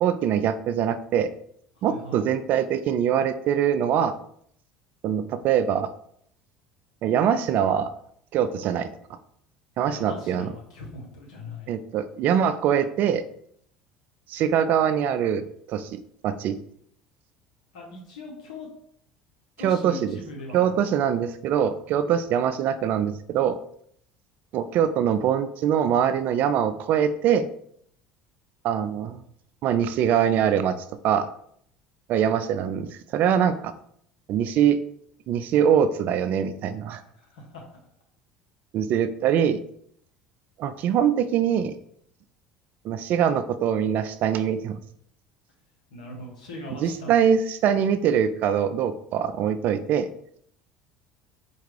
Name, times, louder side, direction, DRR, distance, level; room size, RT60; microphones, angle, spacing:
voice 1, 0.0-1.3 1.8-4.2 5.0-5.9 7.0-7.9 8.3-8.9 9.8-10.5 11.7-13.2 14.3-16.6 19.6-20.2 20.5-23.6 24.5-27.5 28.6-29.2 29.6-31.3 32.1-33.7 34.3-34.8 35.3-37.0 38.7-39.6 40.6-41.7 42.8-44.8 46.8-50.1, right 8 dB, 55° right, 12 dB, 0.3 m, -23 dB
voice 2, 1.8-2.3 9.8-11.7 17.7-18.7 19.6-20.8 37.1-37.6 45.9-47.1, left 1 dB, 85° left, -1 dB, 1.0 m, -40 dB
4.4 x 2.3 x 3.3 m, 0.67 s
hypercardioid pair, 70°, 4 cm